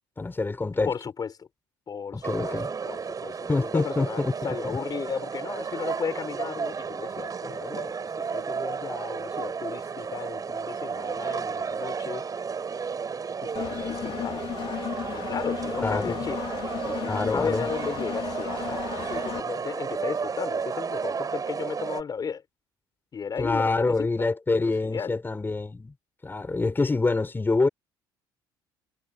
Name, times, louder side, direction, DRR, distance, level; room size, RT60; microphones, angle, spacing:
voice 1, 0.2-0.9 2.1-2.7 3.5-4.3 4.6-4.8 15.8-16.1 17.1-17.7 23.4-25.9 26.2-27.7, left 3 dB, 20° left, 5.2 m, -26 dB
voice 2, 0.8-1.5 1.9-8.0 8.3-12.2 13.4-14.5 15.1-16.4 16.8-22.4 23.1-25.2, left 6 dB, 40° left, 5.4 m, -35 dB
sound 1, 2.2-22.0, right 5 dB, 35° right, 7.8 m, -33 dB
Engine, 13.5-19.4, left 10 dB, 55° left, 2.6 m, -35 dB
hypercardioid pair, 70°, 10 cm